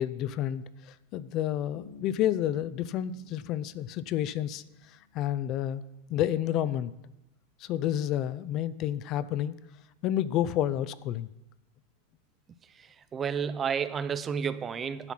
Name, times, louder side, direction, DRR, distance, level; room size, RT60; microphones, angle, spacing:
voice 1, 0.0-4.6 5.1-5.8 6.1-6.9 7.6-9.5 10.0-11.3, left 11 dB, 45° left, 15 dB, 0.5 m, -30 dB
Bass guitar, 1.7-5.2, left 4 dB, 80° left, 1.5 m, -52 dB
voice 2, 13.1-15.1, right 7 dB, 25° right, 14 dB, 0.5 m, -31 dB
11.0 x 5.9 x 5.7 m, 0.95 s
hypercardioid pair, 100°, 0 cm